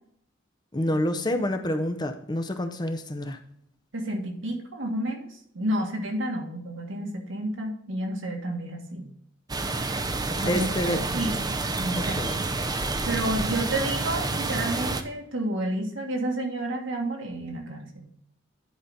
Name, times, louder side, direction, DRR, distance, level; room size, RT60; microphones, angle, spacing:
voice 1, 0.7-3.4 10.4-11.4 11.9-12.4, left 1 dB, 20° left, 7 dB, 0.6 m, -28 dB
voice 2, 3.9-9.1 10.4-11.4 11.8-12.3 13.1-18.1, right 1 dB, 75° right, 1 dB, 1.8 m, -30 dB
sound 1, 9.5-15.0, right 3 dB, 20° right, 0.5 m, -29 dB
10.5 x 5.0 x 4.0 m, 0.70 s
head